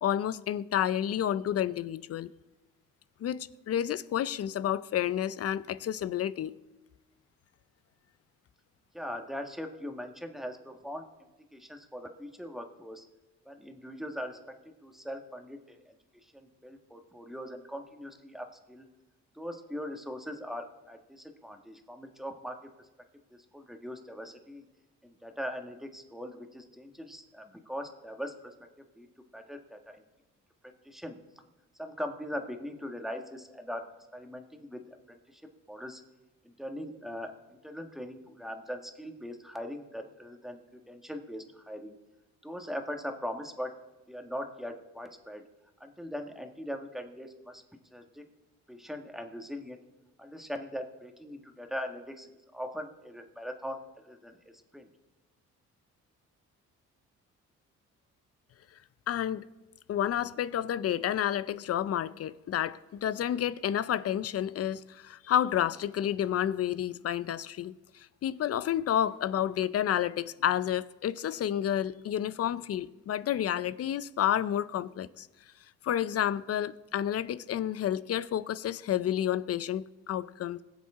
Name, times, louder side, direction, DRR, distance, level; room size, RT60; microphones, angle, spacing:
voice 1, 0.0-2.3 3.2-6.5 59.1-59.4 59.9-75.3 75.8-80.6, left 10 dB, 55° left, 0.5 m, -30 dB
voice 2, 8.9-11.1 11.5-13.0 13.4-14.5 14.8-15.9 16.2-18.9 19.3-22.6 23.3-24.6 25.0-28.5 29.0-29.1 29.3-30.0 30.6-31.2 31.8-33.9 34.1-35.4 35.7-36.0 36.4-41.9 42.4-43.7 44.1-45.4 45.8-47.6 47.9-48.2 48.7-49.8 50.2-54.9, equal, ahead, 1.5 m, -40 dB
21.0 x 7.3 x 3.7 m
cardioid pair, 90°, 30 cm